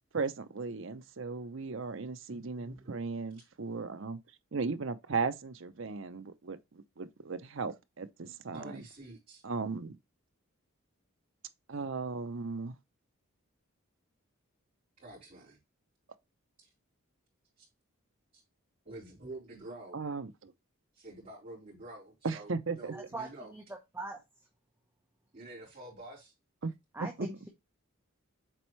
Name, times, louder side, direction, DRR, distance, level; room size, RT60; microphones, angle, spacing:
voice 1, 0.1-4.2 4.5-8.8 9.4-10.0 11.7-12.8 19.9-20.5 22.2-22.9 26.6-26.7 27.2-27.3, right 4 dB, 60° right, 0.7 m, -36 dB
voice 2, 2.3-2.9 8.2-9.4 15.0-15.6 16.6-16.7 17.6-17.7 18.3-18.4 18.8-20.0 20.9-23.5 25.3-26.3, right 2 dB, 35° right, 4.0 m, -48 dB
voice 3, 22.9-23.6 23.9-24.2 26.9-27.5, right 2 dB, 10° right, 1.0 m, -41 dB
7.5 x 4.4 x 3.2 m
head